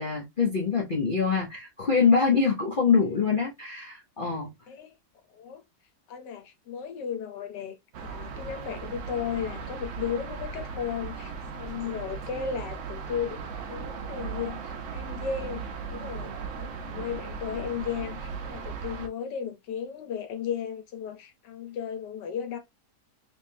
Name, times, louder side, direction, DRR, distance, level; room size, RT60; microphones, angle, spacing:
voice 1, 0.0-4.5, left 5 dB, 40° left, 0.7 m, -24 dB
voice 2, 2.9-3.4 4.7-4.9 5.3-5.6 6.1-7.7 8.0-22.6, left 7 dB, 90° left, 1.5 m, -35 dB
sound 1, 7.9-19.1, right 5 dB, 60° right, 0.9 m, -37 dB
3.5 x 3.2 x 2.6 m
omnidirectional pair, 1.8 m